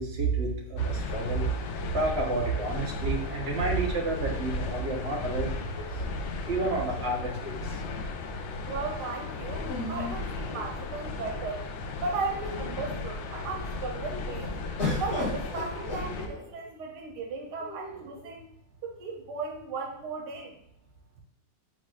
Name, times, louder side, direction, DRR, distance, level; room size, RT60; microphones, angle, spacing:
voice 1, 0.0-1.5 1.9-5.8 6.5-7.8, right 3 dB, 50° right, 0 dB, 0.9 m, -29 dB
sound 1, 0.8-16.3, left 3 dB, 80° left, 0.6 m, -36 dB
sound 2, 6.5-7.6 9.6-11.1 11.8-11.9 12.2-12.8 14.8-16.7 17.6-18.3, left 2 dB, 45° left, 2.0 m, -37 dB
voice 2, 8.7-11.7 12.0-14.5 15.0-18.5 18.8-20.6, right 4 dB, 90° right, 1 dB, 1.3 m, -36 dB
5.0 x 4.1 x 2.3 m, 0.78 s
omnidirectional pair, 1.8 m